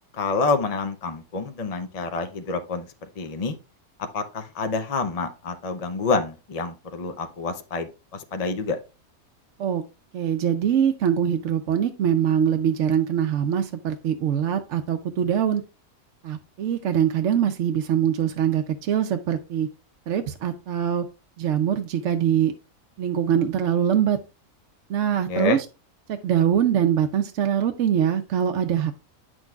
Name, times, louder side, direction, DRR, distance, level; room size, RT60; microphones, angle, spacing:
voice 1, 0.1-2.9 3.2-3.5 4.0-8.8 25.3-25.6, left 4 dB, 50° left, 7 dB, 0.4 m, -27 dB
voice 2, 10.1-15.6 16.2-19.7 20.1-21.0 21.4-22.5 23.0-24.2 24.9-25.6 26.1-28.9, right 9 dB, 65° right, 6 dB, 0.9 m, -23 dB
9.0 x 6.3 x 2.3 m, 0.30 s
omnidirectional pair, 1.5 m